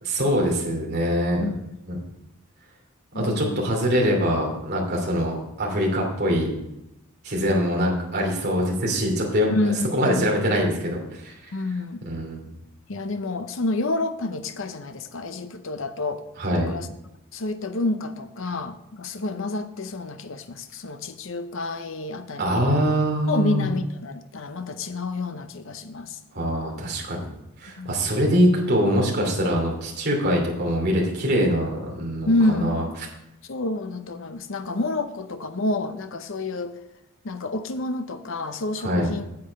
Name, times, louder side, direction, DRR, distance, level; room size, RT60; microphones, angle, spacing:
voice 1, 0.0-1.4 1.9-2.0 3.1-6.5 7.2-11.5 12.1-12.5 16.4-16.7 22.4-23.7 26.3-27.3 27.6-32.8 38.8-39.1, equal, 45° right, -1 dB, 2.7 m, -23 dB
voice 2, 1.4-1.8 3.1-3.7 9.5-10.3 11.5-12.0 12.9-16.2 16.5-16.9 17.3-22.8 23.3-26.2 27.8-28.0 32.3-33.0 33.5-36.8 37.2-39.2, left 2 dB, 60° left, 9 dB, 0.7 m, -28 dB
8.7 x 7.7 x 5.2 m, 0.88 s
head